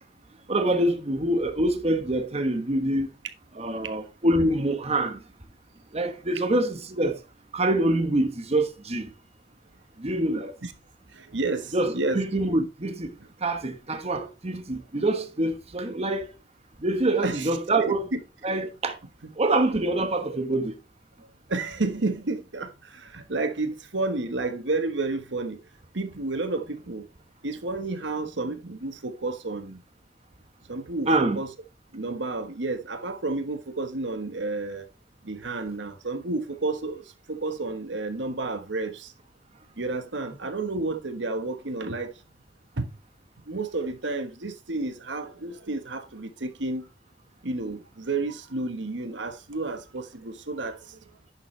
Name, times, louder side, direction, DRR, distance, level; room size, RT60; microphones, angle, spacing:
voice 1, 0.5-3.1 3.6-5.2 5.9-7.2 7.5-9.1 10.0-10.5 11.7-13.1 13.4-16.2 16.8-18.1 18.4-19.0 19.4-20.7 31.1-31.4, right 1 dB, 35° right, 1.2 m, -25 dB
voice 2, 11.2-12.2 17.2-17.5 17.9-18.2 19.2-19.3 21.5-22.7 23.0-25.6 25.9-27.0 27.4-29.8 30.7-31.5 31.9-34.8 35.2-37.0 37.3-39.1 39.8-42.1 42.8-42.9 43.5-46.8 47.4-50.8, right 3 dB, 80° right, 1.3 m, -31 dB
10.5 x 7.0 x 3.2 m
head